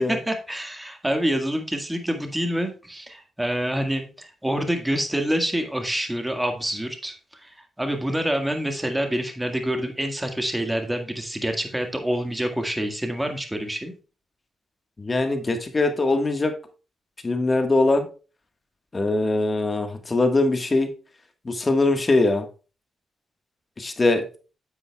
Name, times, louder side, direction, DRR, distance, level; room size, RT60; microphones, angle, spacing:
voice 1, 0.0-13.9, equal, 10° right, 5 dB, 1.8 m, -27 dB
voice 2, 15.0-16.5 17.2-18.1 18.9-20.9 21.4-22.5 23.8-24.2, left 2 dB, 35° left, 6 dB, 1.5 m, -22 dB
10.0 x 7.7 x 2.3 m, 0.35 s
supercardioid pair, 50°, 0 cm